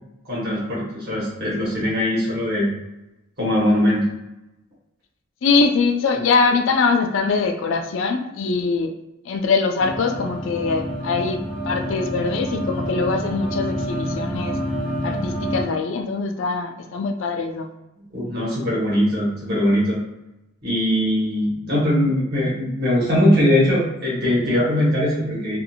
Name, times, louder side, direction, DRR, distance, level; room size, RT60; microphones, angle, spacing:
voice 1, 0.2-2.7 3.4-4.1 18.1-20.0 20.6-25.6, left 1 dB, 50° right, -6 dB, 1.2 m, -21 dB
voice 2, 5.4-8.9 9.2-14.6 15.0-17.7, left 4 dB, 65° left, 4 dB, 0.3 m, -22 dB
sound 1, 9.8-15.6, equal, 5° left, 0.5 m, -28 dB
2.6 x 2.4 x 2.7 m, 0.92 s
head